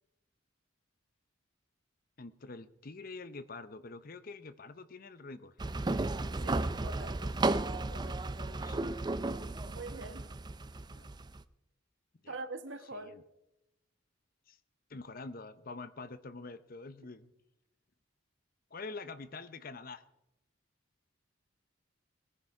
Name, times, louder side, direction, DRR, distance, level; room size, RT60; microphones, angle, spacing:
voice 1, 2.2-5.5 8.6-8.9 10.9-11.1 12.2-12.4 12.9-13.2 14.5-14.6 14.9-17.3 18.7-20.0, left 3 dB, 45° left, 0.7 m, -46 dB
sound 1, 5.6-11.4, right 2 dB, 20° right, 0.5 m, -34 dB
voice 2, 6.4-7.4 7.9-8.8 9.6-10.3 12.3-13.1, right 3 dB, 70° right, 1.2 m, -45 dB
20.5 x 10.0 x 4.8 m
head